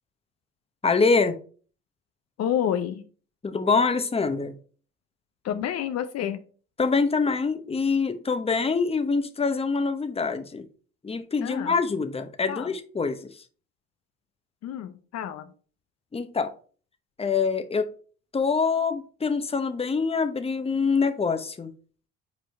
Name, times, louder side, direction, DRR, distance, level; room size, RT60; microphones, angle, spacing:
voice 1, 0.8-1.3 3.4-4.5 6.8-10.7 11.0-13.3 16.1-16.5 17.2-17.9 18.3-21.7, left 4 dB, 20° left, 0.9 m, -25 dB
voice 2, 2.4-3.0 5.4-6.4 11.4-11.7 12.5-12.7 14.6-15.5, left 9 dB, 60° left, 0.7 m, -29 dB
5.3 x 4.4 x 4.4 m
supercardioid pair, 75°, 30 cm